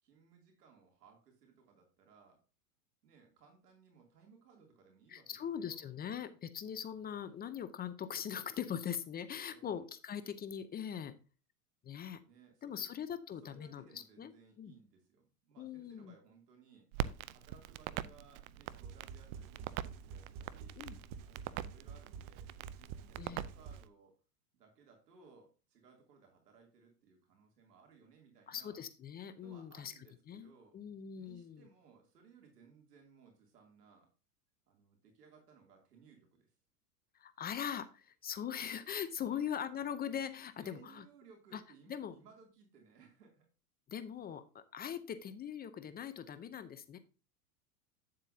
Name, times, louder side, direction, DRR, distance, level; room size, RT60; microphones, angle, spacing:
voice 1, 0.0-2.4 3.0-5.8 9.5-9.9 12.2-12.9 13.4-16.9 17.3-20.8 21.2-24.1 24.5-28.8 29.4-30.8 31.2-34.1 34.7-36.5 39.2-39.4 40.6-43.5, right 5 dB, 85° right, 2 dB, 2.9 m, -62 dB
voice 2, 5.1-11.1 11.8-12.2 12.6-14.7 15.6-16.1 20.8-21.0 23.2-23.5 28.5-29.9 30.3-30.5 30.7-31.7 37.1-41.0 41.5-41.6 41.9-42.1 43.9-47.0, left 8 dB, 20° left, 12 dB, 0.6 m, -41 dB
Crackle, 16.9-23.9, right 12 dB, 60° right, 0.7 m, -43 dB
sound 1, 18.7-23.8, right 6 dB, 45° right, 1.2 m, -49 dB
9.1 x 7.5 x 2.7 m, 0.33 s
hypercardioid pair, 110°, 46 cm